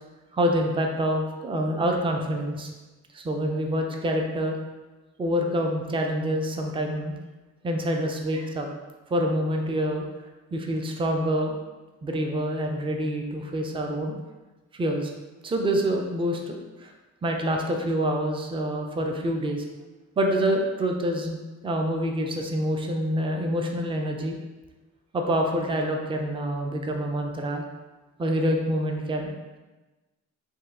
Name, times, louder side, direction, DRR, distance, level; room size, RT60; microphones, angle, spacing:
voice 1, 0.3-2.7 3.1-4.6 5.2-7.2 7.6-8.7 9.1-10.1 10.5-11.5 12.0-14.2 14.7-15.1 15.4-16.9 17.2-19.6 20.2-21.4 21.6-24.4 25.1-27.6 28.2-29.3, equal, 20° right, 2 dB, 0.4 m, -26 dB
5.3 x 2.3 x 3.6 m, 1.2 s
cardioid pair, 140°, 29 cm